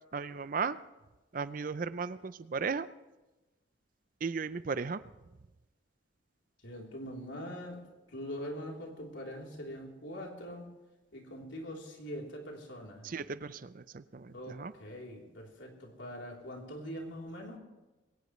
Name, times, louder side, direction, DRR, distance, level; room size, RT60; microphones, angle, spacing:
voice 1, 0.1-0.8 1.3-2.9 4.2-5.0 13.0-14.7, right 5 dB, 45° right, 15 dB, 0.5 m, -36 dB
voice 2, 6.6-10.7 11.1-13.1 14.3-17.6, equal, 70° left, 0 dB, 3.5 m, -43 dB
21.5 x 17.5 x 3.2 m, 1.1 s
head